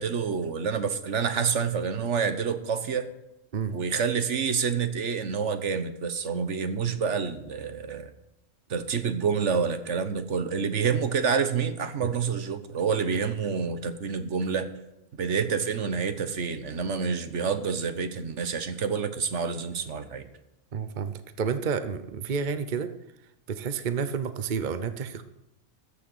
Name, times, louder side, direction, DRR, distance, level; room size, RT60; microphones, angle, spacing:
voice 1, 0.0-3.1 3.7-8.1 8.7-14.7 15.2-20.3, right 6 dB, 70° right, 11 dB, 1.4 m, -28 dB
voice 2, 20.7-22.9 23.5-25.2, right 6 dB, 45° right, 11 dB, 1.0 m, -30 dB
14.0 x 6.5 x 7.9 m, 0.89 s
omnidirectional pair, 1.3 m